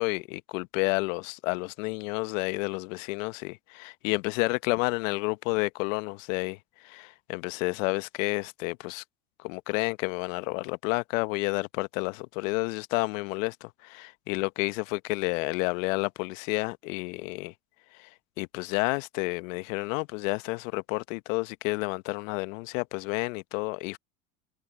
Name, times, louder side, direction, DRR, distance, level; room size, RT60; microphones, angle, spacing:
voice 1, 0.0-9.0 9.4-17.5 17.9-18.1 18.4-24.0, left 26 dB, 65° left, 1.1 m, -30 dB
hypercardioid pair, 80°, 42 cm